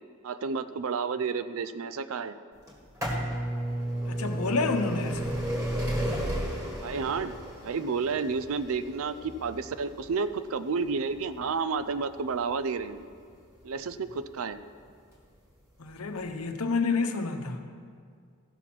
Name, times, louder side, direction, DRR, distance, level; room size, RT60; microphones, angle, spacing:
voice 1, 0.2-2.3 6.8-13.0 13.6-14.6, right 5 dB, 65° right, 13 dB, 0.4 m, -31 dB
sound 1, 2.7-14.3 15.1-15.2 16.2-16.3 16.5-16.6, right 1 dB, 15° right, 1.8 m, -33 dB
voice 2, 4.1-5.4 15.8-17.6, left 4 dB, 85° left, 5 dB, 0.9 m, -29 dB
14.5 x 5.9 x 6.0 m, 2.1 s
head